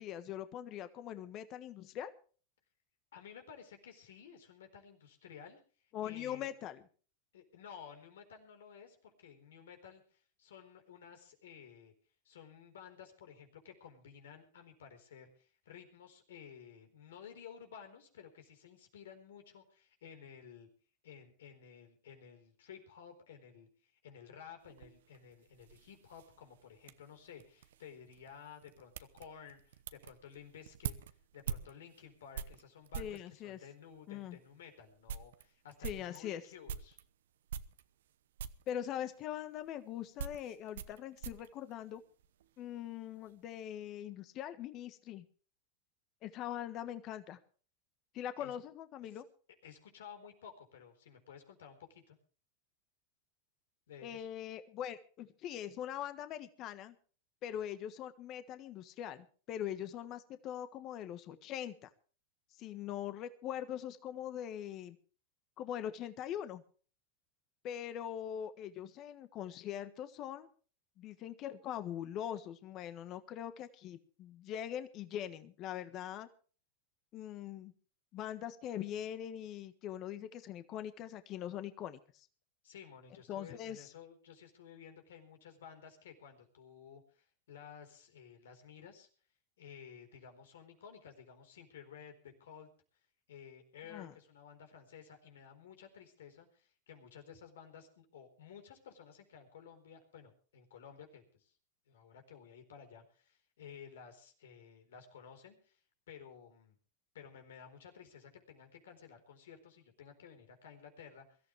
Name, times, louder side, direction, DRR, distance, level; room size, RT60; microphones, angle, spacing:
voice 1, 0.0-2.1 5.9-6.8 33.0-33.6 34.1-34.4 35.8-36.4 38.7-42.0 42.6-45.2 46.2-47.4 48.1-49.2 54.0-56.9 57.4-61.9 62.5-65.0 65.6-66.6 67.6-70.5 71.0-76.3 77.1-77.7 78.1-82.3 83.3-83.9 93.9-94.1, left 10 dB, 45° left, 11 dB, 1.4 m, -42 dB
voice 2, 3.1-6.5 7.3-11.9 12.2-20.7 21.0-31.0 31.3-37.0 48.4-48.6 49.1-49.2 49.6-52.2 53.9-54.3 82.6-89.1 89.6-92.7 93.3-101.5 101.9-106.8 107.1-111.4, left 7 dB, 80° left, 6 dB, 4.3 m, -54 dB
sound 1, 24.6-33.3 34.0-34.1 34.5-34.6 34.9-37.1 37.5-38.1 38.4-38.7 39.6-42.5 42.8-43.3, right 8 dB, 75° right, 0.9 m, -45 dB
23.0 x 14.0 x 3.4 m, 0.40 s
hypercardioid pair, 105°, 0 cm